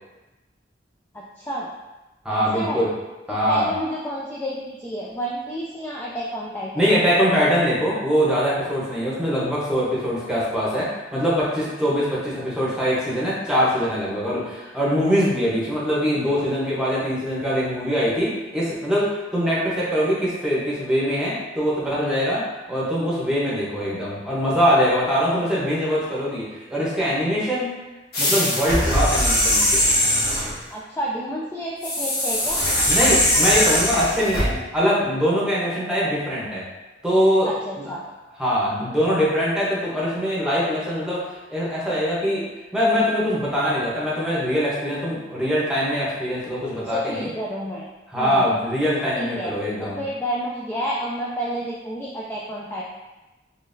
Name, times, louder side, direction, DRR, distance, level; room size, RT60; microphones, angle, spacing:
voice 1, 1.1-1.7 2.3-2.8 3.3-6.8 30.7-32.6 37.5-38.0 47.1-47.8 48.1-48.5 49.2-49.5 49.8-52.8, equal, 15° left, -5 dB, 0.3 m, -30 dB
voice 2, 2.2-2.9 3.3-3.7 6.7-27.8 28.2-29.8 32.9-36.6 37.0-37.9 38.3-42.4 42.7-47.3 48.1-50.0, equal, 5° right, -7 dB, 0.9 m, -23 dB
sound 1, 28.1-30.5 31.8-34.5, left 1 dB, 60° left, 1.4 m, -20 dB
3.8 x 3.0 x 2.6 m, 1.1 s
head